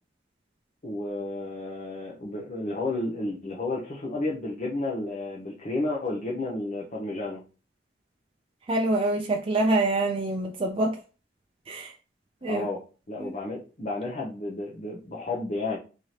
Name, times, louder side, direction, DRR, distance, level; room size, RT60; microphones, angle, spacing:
voice 1, 0.8-7.4 12.5-12.8 13.1-15.8, left 2 dB, 40° left, 0.8 m, -32 dB
voice 2, 8.7-11.0 11.7-11.9 12.4-12.7 13.2-13.3, right 2 dB, 30° right, 0.4 m, -25 dB
4.0 x 2.8 x 3.2 m
head